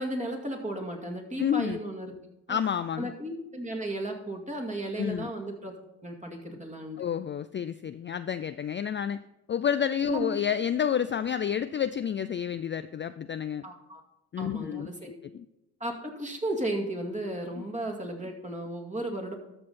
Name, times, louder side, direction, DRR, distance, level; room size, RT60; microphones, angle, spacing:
voice 1, 0.0-2.1 2.5-2.6 3.0-5.7 6.0-7.0 10.1-10.3 13.6-14.0 14.4-15.1 15.8-19.4, right 1 dB, 20° right, 2 dB, 2.3 m, -34 dB
voice 2, 1.4-1.8 2.5-3.1 5.0-5.3 7.0-9.2 9.5-13.7 14.3-15.4, left 8 dB, 30° left, 12 dB, 0.4 m, -30 dB
13.0 x 6.4 x 4.2 m, 0.91 s
cardioid pair, 75°, 38 cm